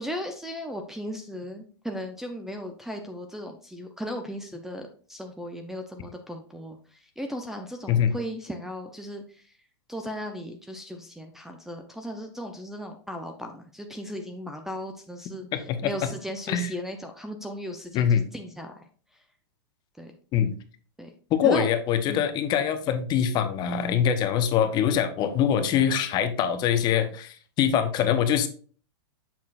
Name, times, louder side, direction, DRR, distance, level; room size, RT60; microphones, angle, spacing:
voice 1, 0.0-6.8 7.2-9.2 9.9-15.5 15.8-18.7 20.0-20.1 21.0-21.1 21.4-21.7 22.1-22.3, equal, 5° right, 5 dB, 0.5 m, -36 dB
voice 2, 15.4-15.9 16.5-16.7 17.9-18.3 20.3-20.5 21.3-28.5, left 8 dB, 30° left, 9 dB, 0.7 m, -24 dB
7.4 x 5.6 x 2.4 m, 0.43 s
hypercardioid pair, 135°, 14 cm